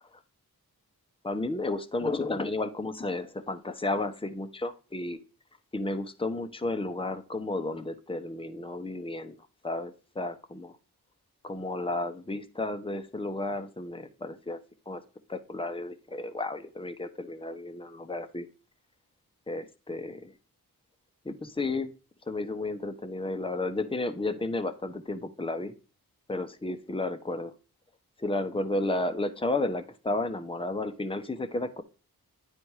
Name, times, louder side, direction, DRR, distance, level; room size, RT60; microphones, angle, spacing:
voice 1, 1.2-5.2 5.7-9.4 9.6-10.7 11.4-14.6 14.9-15.0 15.3-18.5 19.5-20.3 21.2-21.9 22.3-25.7 26.3-27.5 28.2-31.8, left 2 dB, 15° left, 8 dB, 0.9 m, -32 dB
9.6 x 4.2 x 4.8 m, 0.35 s
wide cardioid pair, 60°, 38 cm